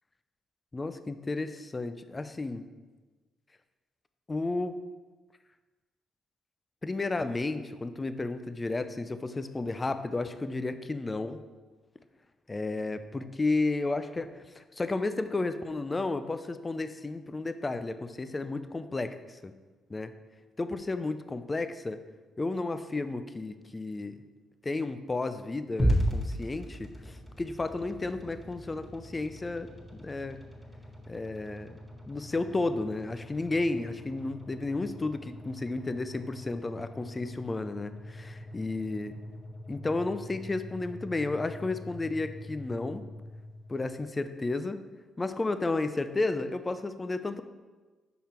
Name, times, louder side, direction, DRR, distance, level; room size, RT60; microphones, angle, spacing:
voice 1, 0.7-2.7 4.3-4.8 6.8-11.4 12.5-19.5 19.9-20.1 20.6-22.0 22.4-24.1 24.6-30.4 31.1-31.7 32.1-39.1 39.7-43.0 43.7-44.8 45.2-47.4, left 3 dB, 25° left, 10 dB, 0.4 m, -32 dB
sound 1, 25.8-44.0, equal, ahead, 1.6 m, -38 dB
5.7 x 5.5 x 4.4 m, 1.3 s
cardioid pair, 90°, 0 cm